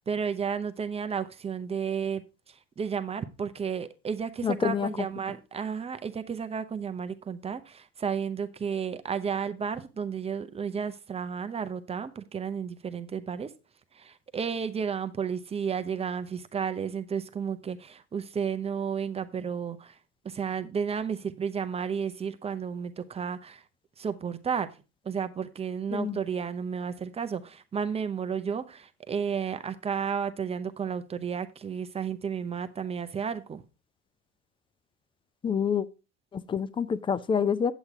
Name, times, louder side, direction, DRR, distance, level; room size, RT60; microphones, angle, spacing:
voice 1, 0.0-13.5 13.9-20.0 20.2-23.6 24.0-24.7 25.0-33.6, right 6 dB, 15° right, 0.7 m, -32 dB
voice 2, 4.4-4.9 25.9-26.2 35.4-35.9 36.3-37.7, left 7 dB, 15° left, 0.4 m, -27 dB
8.2 x 8.0 x 3.5 m
hypercardioid pair, 95°, 35 cm